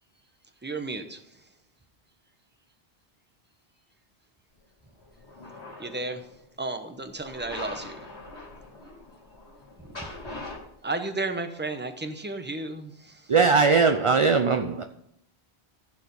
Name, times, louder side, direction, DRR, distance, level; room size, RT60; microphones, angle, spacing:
voice 1, 0.6-1.2 5.8-6.3 6.6-8.0 10.0-10.1 10.8-13.3, right 2 dB, 10° right, 6 dB, 0.8 m, -33 dB
sound 1, 4.9-6.3 7.2-10.6, left 2 dB, 85° left, 3.7 m, -42 dB
voice 2, 13.3-14.8, right 5 dB, 40° right, 8 dB, 0.5 m, -20 dB
15.0 x 5.0 x 5.3 m, 0.74 s
omnidirectional pair, 1.1 m